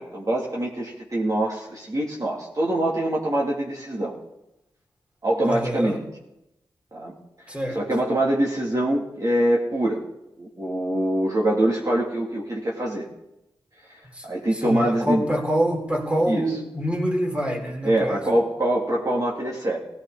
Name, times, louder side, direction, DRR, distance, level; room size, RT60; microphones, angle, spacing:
voice 1, 0.0-4.1 5.2-6.0 6.9-7.1 7.7-10.0 10.4-13.1 14.2-15.2 16.3-16.6 17.8-19.8, right 1 dB, 40° right, -4 dB, 3.1 m, -24 dB
voice 2, 5.4-6.0 7.5-7.8 14.1-18.2, right 1 dB, 15° right, 0 dB, 4.3 m, -26 dB
17.0 x 16.5 x 4.2 m, 0.88 s
cardioid pair, 45°, 9 cm